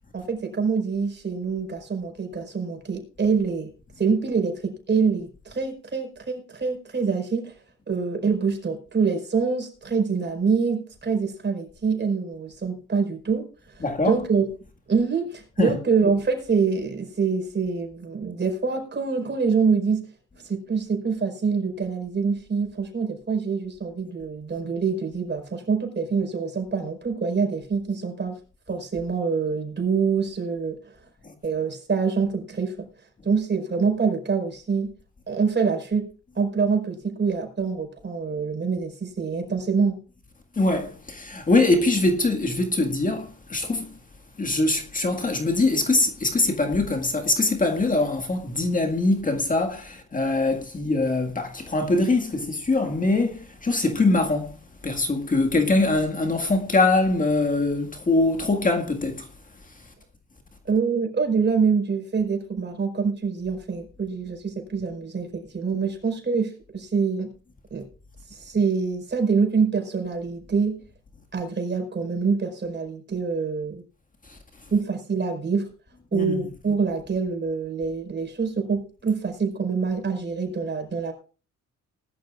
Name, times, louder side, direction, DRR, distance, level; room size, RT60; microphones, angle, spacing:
voice 1, 0.1-3.7 4.0-7.5 7.9-14.5 14.9-20.0 20.4-28.4 28.7-30.8 31.4-32.9 33.2-34.9 35.3-36.1 36.3-40.0 60.7-67.3 67.7-67.9 68.3-70.8 71.3-73.8 74.7-75.7 76.1-81.1, right 5 dB, 35° right, 5.0 m, -25 dB
voice 2, 13.8-14.2 15.6-15.8 31.2-31.3 40.6-43.9 44.4-54.6 54.8-59.3 74.3-74.4 76.1-76.4, left 2 dB, 25° left, 1.9 m, -23 dB
19.5 x 12.0 x 2.5 m
cardioid pair, 90°, 30 cm